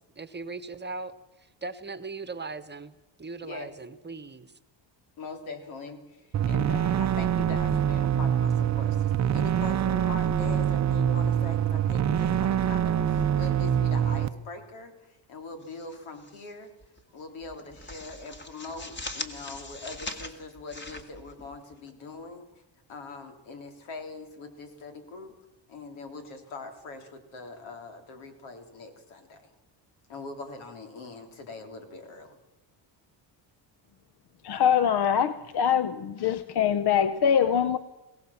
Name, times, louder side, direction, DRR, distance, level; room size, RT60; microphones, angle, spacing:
voice 1, 0.2-4.5, right 3 dB, 20° right, 1.2 m, -39 dB
voice 2, 3.4-3.7 5.2-16.7 17.1-22.5 22.9-25.4 25.7-29.4 30.1-32.4, left 3 dB, 90° left, 3.4 m, -42 dB
sound 1, 6.3-14.3, right 9 dB, 35° right, 0.6 m, -25 dB
sound 2, 15.6-16.5 16.8-17.0 17.4-21.9, left 2 dB, 25° left, 2.2 m, -41 dB
voice 3, 34.4-37.8, left 8 dB, 55° left, 1.0 m, -23 dB
21.5 x 17.5 x 7.2 m
cardioid pair, 105°, 47 cm